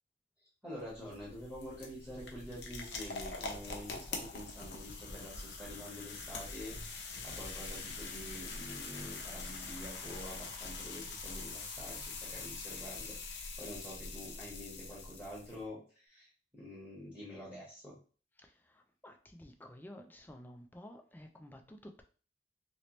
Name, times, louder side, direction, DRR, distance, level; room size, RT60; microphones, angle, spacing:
voice 1, 0.6-17.9, equal, 5° right, -6 dB, 1.2 m, -47 dB
sound 1, 0.7-15.6, left 3 dB, 80° left, 0.7 m, -44 dB
voice 2, 18.4-22.0, left 1 dB, 10° left, 4 dB, 0.4 m, -52 dB
3.0 x 2.9 x 3.0 m, 0.39 s
head